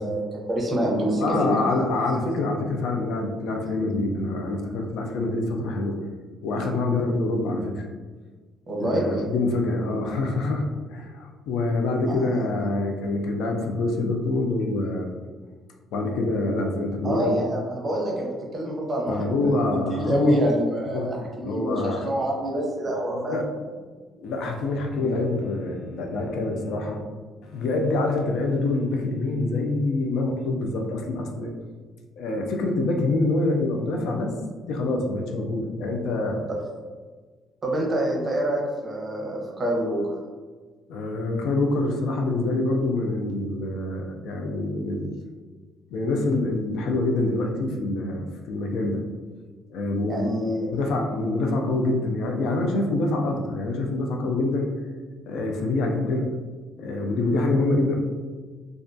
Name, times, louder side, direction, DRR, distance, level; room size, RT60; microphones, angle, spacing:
voice 1, 0.0-1.5 8.7-9.0 12.1-12.2 17.0-23.4 25.0-25.2 36.5-36.6 37.6-40.1 50.1-50.7, right 1 dB, 30° right, -1 dB, 0.6 m, -26 dB
voice 2, 1.2-6.0 6.4-7.9 8.8-15.1 15.9-17.4 19.1-20.4 20.9-21.1 21.4-22.1 23.1-23.4 24.2-27.0 27.4-31.5 32.2-34.3 34.6-36.4 40.9-45.2 45.9-49.0 49.7-50.4 50.7-54.7 55.3-56.4 56.8-58.0, left 2 dB, 80° left, 2 dB, 0.4 m, -26 dB
2.3 x 2.1 x 2.6 m, 1.4 s
cardioid pair, 105°, 0 cm